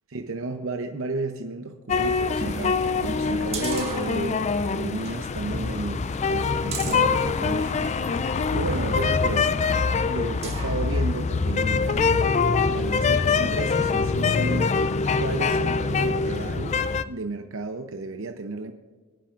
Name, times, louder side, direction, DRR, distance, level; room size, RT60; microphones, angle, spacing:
voice 1, 0.1-8.2 8.5-14.9 15.2-18.7, right 3 dB, 70° right, 6 dB, 0.7 m, -33 dB
sound 1, 1.9-17.0, left 4 dB, 35° left, 0.4 m, -24 dB
sound 2, 2.4-4.6 5.0-5.1 5.5-8.0 8.6-10.8 11.3-11.4, right 3 dB, 30° right, 1.7 m, -37 dB
23.5 x 10.0 x 2.5 m, 1.4 s
head